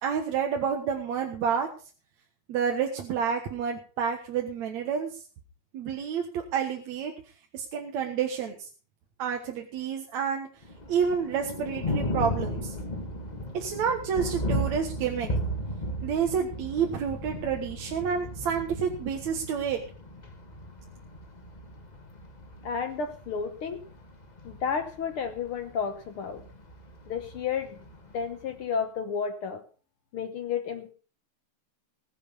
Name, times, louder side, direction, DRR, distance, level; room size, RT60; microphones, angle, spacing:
voice 1, 0.0-1.7 2.5-5.2 5.7-7.1 7.5-8.7 9.2-10.5 10.9-12.7 13.5-15.3 16.0-19.8, right 7 dB, 70° right, 2 dB, 2.6 m, -29 dB
Thunder, 10.6-28.6, equal, 80° left, 0.4 m, -36 dB
voice 2, 22.6-23.8 24.4-26.5 27.1-27.8 28.1-29.6 30.1-30.9, left 6 dB, 60° left, 7 dB, 1.5 m, -32 dB
20.5 x 7.1 x 5.6 m, 0.39 s
omnidirectional pair, 3.4 m